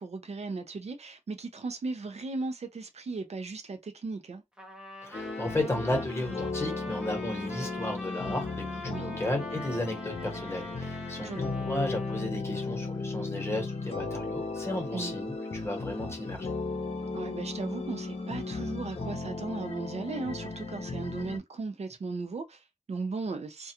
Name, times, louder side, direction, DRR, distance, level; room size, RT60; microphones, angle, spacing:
voice 1, 0.0-4.4 8.9-9.2 11.2-11.6 14.9-15.1 17.1-23.7, right 3 dB, 60° right, 0.5 m, -37 dB
Trumpet, 4.6-12.3, left 1 dB, 5° right, 0.7 m, -44 dB
voice 2, 5.0-16.5, left 1 dB, 20° left, 1.1 m, -34 dB
sound 1, 5.1-21.4, left 3 dB, 55° left, 0.7 m, -35 dB
2.3 x 2.2 x 2.8 m
wide cardioid pair, 110°, 12 cm